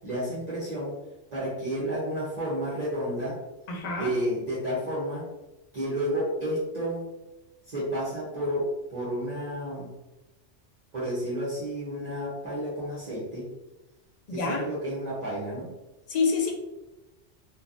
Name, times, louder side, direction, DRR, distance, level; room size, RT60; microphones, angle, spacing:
voice 1, 0.0-1.0 1.3-3.4 4.0-5.3 5.7-7.1 7.6-9.9 10.9-13.5 14.3-15.7, equal, 40° right, -9 dB, 0.8 m, -31 dB
voice 2, 3.7-4.1 14.3-14.7 16.1-16.5, left 4 dB, 60° left, 2 dB, 0.4 m, -27 dB
3.1 x 2.2 x 2.5 m, 1.0 s
omnidirectional pair, 1.2 m